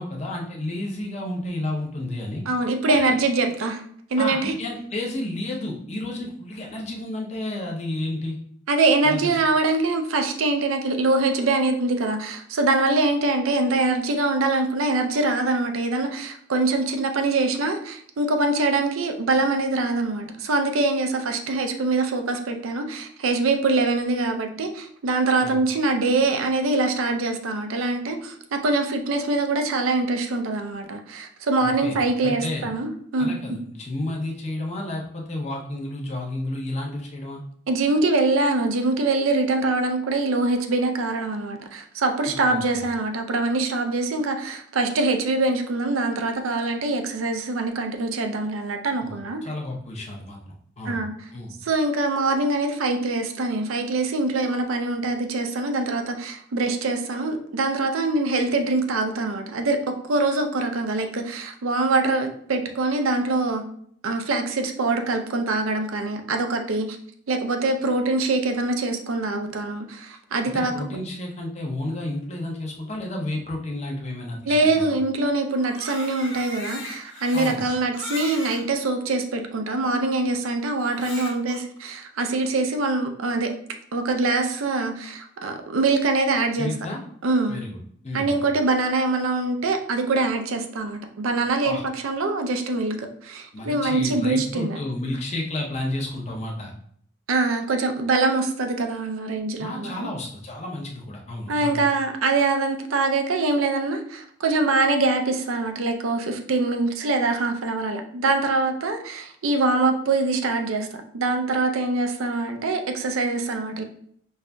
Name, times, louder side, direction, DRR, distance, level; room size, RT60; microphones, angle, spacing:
voice 1, 0.0-2.4 2.8-3.2 4.2-8.4 9.0-9.4 25.4-25.6 31.6-32.7 33.2-37.4 42.3-42.8 49.0-51.0 51.3-51.5 70.5-75.0 77.3-77.7 86.6-87.0 87.5-87.8 88.0-88.4 91.6-91.8 93.5-96.7 99.6-101.8, left 1 dB, 35° left, -1 dB, 0.7 m, -31 dB
voice 2, 2.5-3.8 4.1-4.5 8.7-33.4 37.7-49.4 50.9-51.1 51.6-63.6 64.0-67.0 67.3-70.7 74.5-83.5 83.9-86.7 87.2-87.6 88.1-94.8 97.3-100.1 101.5-110.9 111.1-113.8, right 3 dB, 90° right, 5 dB, 0.5 m, -24 dB
Crying sobbing, 75.5-78.6 79.4-79.5 80.8-81.6, left 2 dB, 60° left, 0.9 m, -37 dB
5.3 x 2.5 x 2.2 m, 0.65 s
head